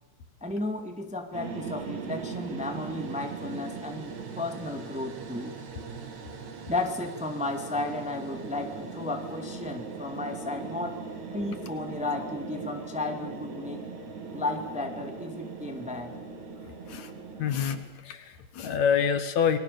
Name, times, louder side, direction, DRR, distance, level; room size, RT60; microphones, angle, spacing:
voice 1, 0.4-5.6 6.7-11.0 11.3-13.8 14.3-16.2, left 2 dB, 5° right, 4 dB, 1.8 m, -33 dB
sound 1, 1.3-17.8, right 4 dB, 75° right, 3.9 m, -39 dB
voice 2, 17.4-17.8 18.0-19.6, left 7 dB, 75° left, 9 dB, 2.9 m, -26 dB
29.5 x 21.5 x 6.9 m, 1.1 s
omnidirectional pair, 3.3 m